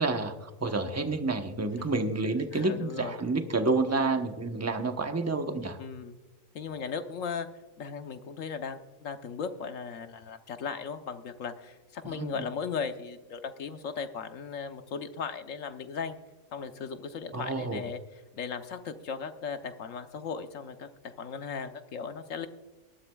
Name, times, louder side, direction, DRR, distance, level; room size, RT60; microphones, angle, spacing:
voice 1, 0.0-5.8 12.0-12.4 17.3-17.8, right 3 dB, 15° right, 6 dB, 0.9 m, -29 dB
voice 2, 2.5-3.2 3.9-4.2 5.8-6.2 6.5-7.5 7.8-16.2 16.5-18.0 18.3-22.5, left 6 dB, 70° left, 8 dB, 1.3 m, -37 dB
19.5 x 13.0 x 2.3 m, 1.2 s
omnidirectional pair, 1.4 m